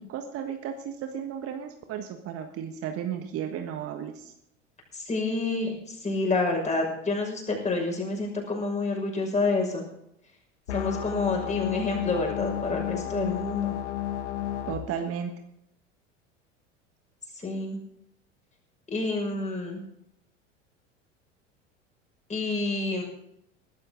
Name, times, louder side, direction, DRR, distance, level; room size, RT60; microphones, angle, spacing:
voice 1, 0.0-4.3 14.7-15.3, right 8 dB, 40° right, 6 dB, 1.5 m, -34 dB
voice 2, 4.9-9.8 10.7-13.7 17.4-17.8 18.9-19.8 22.3-23.0, left 3 dB, 20° left, 1 dB, 6.1 m, -28 dB
sound 1, 10.7-14.7, left 12 dB, 65° left, 1.8 m, -32 dB
20.5 x 12.5 x 3.9 m, 0.78 s
figure-of-eight pair, 80°, 37 cm